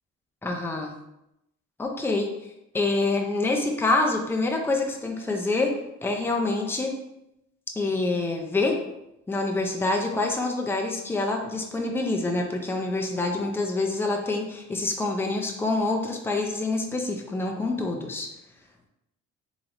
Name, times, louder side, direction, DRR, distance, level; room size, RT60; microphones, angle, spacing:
voice 1, 0.4-1.0 1.8-2.3 2.7-6.9 7.8-8.8 9.3-18.3, left 2 dB, 10° left, 1 dB, 0.5 m, -26 dB
3.4 x 3.0 x 2.5 m, 0.85 s
cardioid pair, 90°, 30 cm